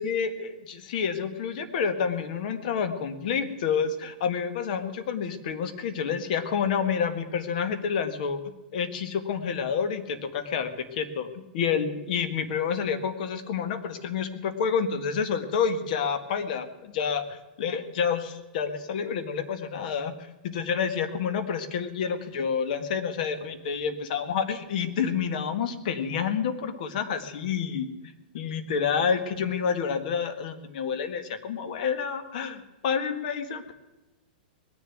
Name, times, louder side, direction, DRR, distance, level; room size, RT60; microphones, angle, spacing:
voice 1, 0.0-8.4 8.7-20.1 20.4-27.9 28.3-33.7, left 6 dB, 55° left, 10 dB, 1.6 m, -29 dB
20.5 x 7.1 x 9.3 m, 1.0 s
hypercardioid pair, 150°, 5 cm